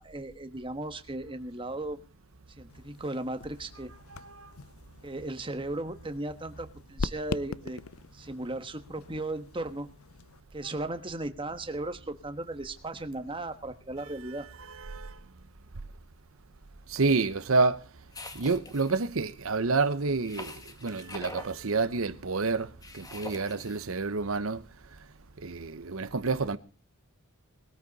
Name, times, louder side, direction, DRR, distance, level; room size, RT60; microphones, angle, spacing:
voice 1, 0.0-2.0 2.6-3.9 5.0-7.8 8.1-9.9 10.5-14.5, right 2 dB, 25° right, 1.2 m, -36 dB
sound 1, 2.7-10.4, left 4 dB, 85° left, 0.7 m, -42 dB
voice 2, 14.7-15.1 16.9-17.8 18.4-20.5 20.8-22.7 23.0-24.6 25.4-26.6, right 3 dB, 75° right, 0.9 m, -28 dB
sound 2, 18.1-19.1 20.2-21.5 22.8-23.8, left 2 dB, 15° left, 1.8 m, -44 dB
20.5 x 14.0 x 4.1 m
head